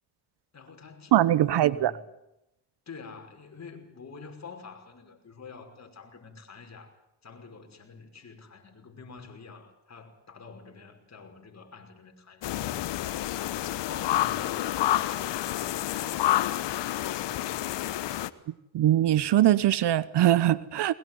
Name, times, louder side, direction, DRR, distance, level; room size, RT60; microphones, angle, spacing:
voice 1, 0.5-1.2 1.4-2.1 2.9-6.9 7.2-12.8 13.3-16.6 17.0-18.0, left 5 dB, 35° left, 5.7 m, -48 dB
voice 2, 1.1-1.9 18.7-20.9, right 13 dB, 60° right, 1.1 m, -22 dB
sound 1, 12.4-18.3, left 13 dB, 65° left, 1.3 m, -29 dB
22.0 x 21.0 x 9.5 m
supercardioid pair, 80°, 46 cm